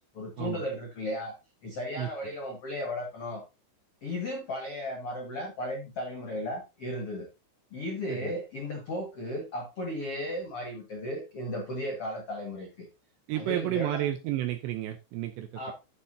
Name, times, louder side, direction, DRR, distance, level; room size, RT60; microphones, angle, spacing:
voice 1, 0.1-1.3 1.6-3.4 4.0-7.3 7.7-12.9 13.3-14.1 15.5-15.7, left 1 dB, 75° left, 1 dB, 1.3 m, -35 dB
voice 2, 13.3-15.7, right 14 dB, 80° right, 7 dB, 2.6 m, -32 dB
13.0 x 6.7 x 2.8 m, 0.26 s
omnidirectional pair, 5.8 m